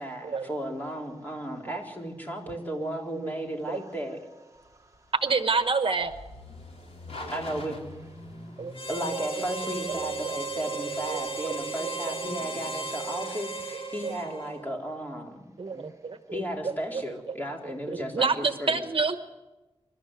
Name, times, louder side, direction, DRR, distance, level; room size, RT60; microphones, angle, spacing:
voice 1, 0.0-4.2 7.3-7.8 8.9-15.4 16.3-18.8, right 1 dB, 15° left, 4.0 m, -34 dB
voice 2, 2.8-3.2 3.7-3.8 5.2-6.2 7.2-7.3 8.6-8.7 9.1-9.2 10.0-10.1 11.1-11.5 11.8-12.1 14.0-14.1 15.6-16.7 17.9-19.2, right 4 dB, 55° right, 1.0 m, -29 dB
voice 3, 4.5-5.1 7.5-8.7 12.3-13.0 15.7-16.0, right 1 dB, 30° right, 1.2 m, -50 dB
sound 1, 4.6-13.8, left 2 dB, 80° left, 3.7 m, -47 dB
Harmonica, 8.7-14.7, right 3 dB, 60° left, 3.7 m, -35 dB
27.5 x 13.0 x 8.2 m
wide cardioid pair, 105°, 10 cm